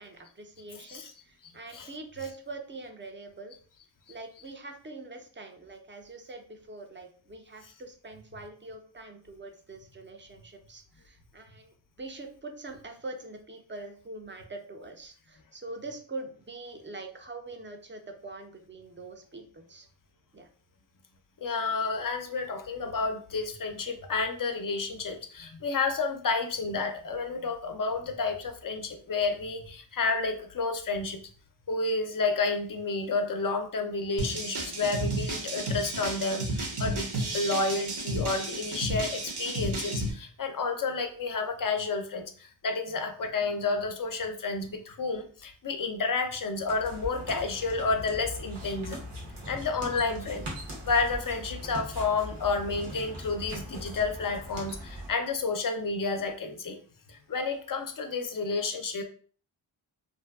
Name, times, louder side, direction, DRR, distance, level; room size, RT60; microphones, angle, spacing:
voice 1, 0.0-3.5 4.1-19.9 20.3-20.5, right 2 dB, 25° right, 4 dB, 0.4 m, -43 dB
voice 2, 1.4-1.9 21.4-31.2 31.7-49.0 49.5-50.5 50.8-56.8 57.1-59.0, left 4 dB, 45° left, 6 dB, 0.4 m, -30 dB
sound 1, 34.2-40.1, right 1 dB, 55° right, 0.7 m, -32 dB
sound 2, 46.5-55.1, equal, 80° right, 1.0 m, -40 dB
2.6 x 2.2 x 2.2 m, 0.43 s
wide cardioid pair, 45°, 50 cm